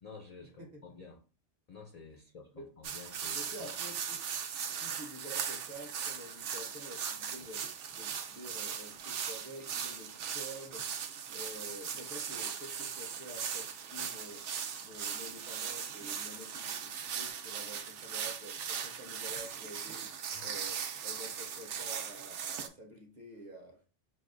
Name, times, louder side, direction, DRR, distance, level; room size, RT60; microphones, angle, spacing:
voice 1, 0.0-1.2 1.7-3.9 20.3-20.5, left 5 dB, 75° left, 0.3 m, -51 dB
sound 1, 2.8-22.7, right 7 dB, 75° right, 0.9 m, -39 dB
voice 2, 3.3-4.3 4.8-10.9 11.3-14.5 14.8-20.2 20.4-23.8, equal, 45° right, 0.7 m, -49 dB
6.0 x 2.2 x 2.4 m
omnidirectional pair, 1.3 m